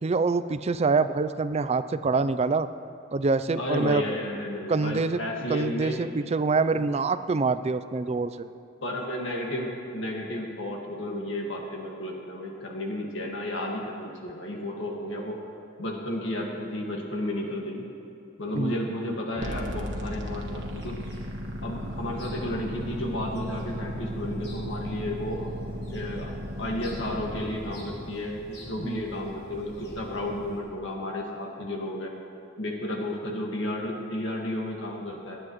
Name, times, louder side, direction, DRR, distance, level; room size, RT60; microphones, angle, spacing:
voice 1, 0.0-2.7 3.1-4.0 4.7-5.2 5.5-8.3 18.5-18.7 19.0-19.2 28.8-29.0, right 4 dB, 35° right, 13 dB, 0.4 m, -25 dB
voice 2, 3.5-6.0 6.7-6.8 8.8-15.4 15.8-17.8 18.4-21.0 21.6-25.5 25.9-32.1 32.6-35.4, left 1 dB, 75° left, -1 dB, 1.8 m, -32 dB
sound 1, 19.4-27.4, equal, 65° right, 1.5 m, -35 dB
sound 2, 20.2-30.6, equal, 55° left, 3.6 m, -46 dB
29.5 x 9.9 x 3.1 m, 2.6 s
head